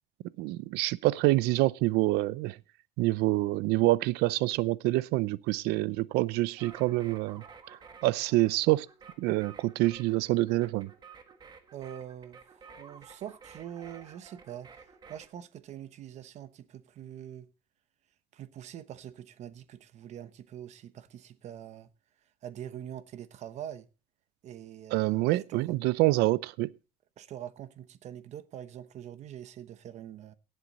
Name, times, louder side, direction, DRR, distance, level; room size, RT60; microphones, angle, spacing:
voice 1, 0.4-2.6 3.0-8.9 9.2-10.9 24.9-26.7, right 19 dB, 65° right, 0.6 m, -27 dB
sound 1, 6.6-15.3, right 5 dB, 25° right, 1.5 m, -53 dB
voice 2, 11.7-14.7 15.1-17.5 18.3-21.9 22.4-23.9 24.4-25.6 27.2-30.3, right 10 dB, 40° right, 1.0 m, -44 dB
17.5 x 7.9 x 4.1 m
cardioid pair, 165°, 18 cm